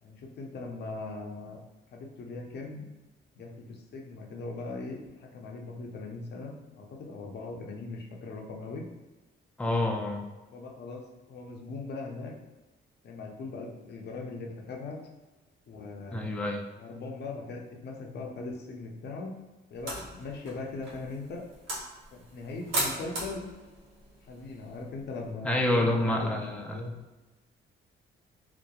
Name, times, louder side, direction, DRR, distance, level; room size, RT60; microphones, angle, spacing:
voice 1, 0.0-1.6 1.9-2.9 3.4-8.9 10.5-12.3 13.0-15.0 15.7-16.5 16.7-19.3 19.7-21.4 22.1-23.5 24.2-26.9, left 3 dB, 55° left, 1 dB, 0.5 m, -40 dB
voice 2, 9.6-10.3 16.1-16.6 25.4-27.0, left 1 dB, 5° left, 1 dB, 0.3 m, -28 dB
sound 1, 19.7-25.3, right 2 dB, 90° right, 0.7 m, -38 dB
2.8 x 2.1 x 2.3 m, 1.1 s
cardioid pair, 90°, 20 cm